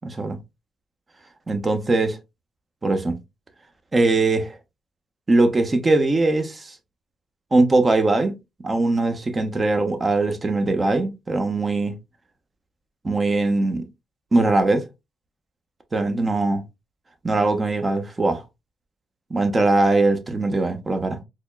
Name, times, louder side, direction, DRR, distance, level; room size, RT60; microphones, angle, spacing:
voice 1, 0.0-0.4 1.5-2.2 2.8-3.2 3.9-4.6 5.3-6.8 7.5-8.3 8.6-11.9 13.0-13.9 14.3-14.8 15.9-16.6 17.2-18.4 19.3-21.2, right 2 dB, 25° right, 0.9 m, -21 dB
4.2 x 3.0 x 2.2 m
cardioid pair, 90°, 0 cm